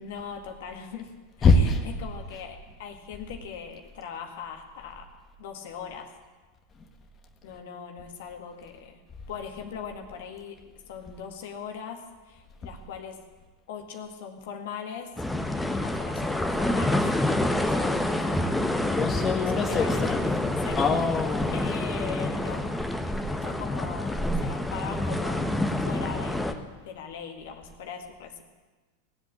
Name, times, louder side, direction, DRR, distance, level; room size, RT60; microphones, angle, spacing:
voice 1, 0.0-5.1 5.4-6.1 7.4-9.0 9.3-10.6 10.9-13.2 13.7-17.1 17.5-18.6 19.4-20.9 21.5-22.7 23.2-25.5 25.8-26.6 26.9-28.4, left 7 dB, 60° left, 4 dB, 1.9 m, -40 dB
voice 2, 1.4-1.8 18.8-20.2 20.7-21.7, left 3 dB, 25° left, 3 dB, 1.7 m, -24 dB
sound 1, 15.2-26.5, left 1 dB, 5° left, 1.2 m, -27 dB
19.0 x 8.0 x 8.4 m, 1.3 s
figure-of-eight pair, 85°, 0 cm